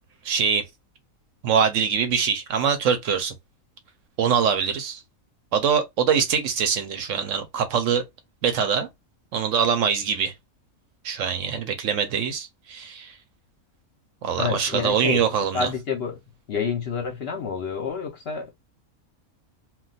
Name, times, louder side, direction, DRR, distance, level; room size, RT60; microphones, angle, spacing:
voice 1, 0.2-0.6 1.4-3.3 4.2-5.0 5.5-8.0 8.4-8.9 9.3-10.3 11.0-13.2 14.2-15.7, right 7 dB, 70° right, 0.8 m, -23 dB
voice 2, 14.4-16.2 16.5-18.5, left 6 dB, 60° left, 0.7 m, -29 dB
2.3 x 2.2 x 3.8 m
omnidirectional pair, 1.5 m